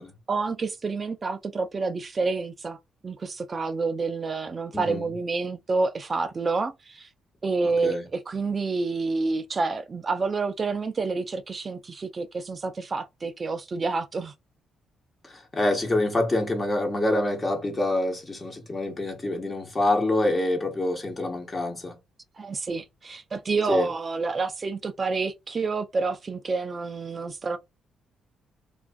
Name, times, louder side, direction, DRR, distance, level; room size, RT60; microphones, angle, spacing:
voice 1, 0.3-2.8 3.0-7.1 7.4-14.3 22.4-27.6, right 4 dB, 35° right, 0.3 m, -28 dB
voice 2, 4.7-5.1 7.6-8.0 15.2-22.0 23.7-23.9, left 1 dB, 25° left, 1.0 m, -26 dB
2.4 x 2.3 x 2.4 m
cardioid pair, 90°, 0 cm